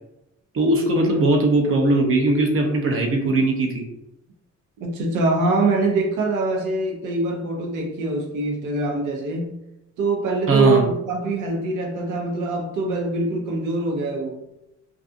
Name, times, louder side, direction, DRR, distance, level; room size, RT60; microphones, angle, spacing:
voice 1, 0.5-3.8 10.5-10.9, right 2 dB, 45° right, 0 dB, 0.6 m, -19 dB
voice 2, 4.8-9.6 10.0-14.5, right 2 dB, 90° right, 1 dB, 0.7 m, -24 dB
2.5 x 2.3 x 2.5 m, 0.87 s
cardioid pair, 90°, 30 cm